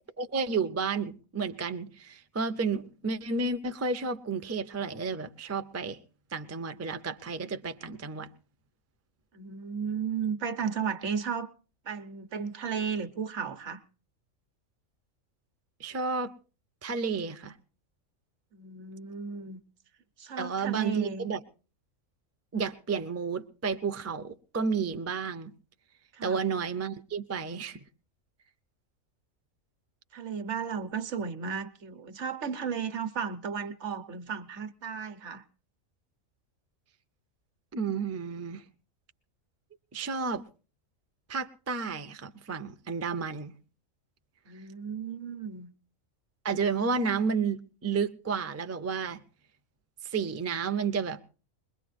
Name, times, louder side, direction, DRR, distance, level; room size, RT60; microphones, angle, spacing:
voice 1, 0.2-6.0 6.3-8.3 15.8-16.3 16.8-17.6 20.4-21.4 22.5-25.5 26.2-27.8 37.7-38.6 39.9-40.4 41.3-43.5 46.4-49.2 50.0-51.2, right 5 dB, 25° right, 0.3 m, -31 dB
voice 2, 9.3-11.5 11.8-13.8 18.5-19.6 20.2-21.3 26.1-26.4 30.1-35.4 44.5-45.7, right 6 dB, 60° right, 1.2 m, -34 dB
21.5 x 21.5 x 2.5 m
omnidirectional pair, 1.4 m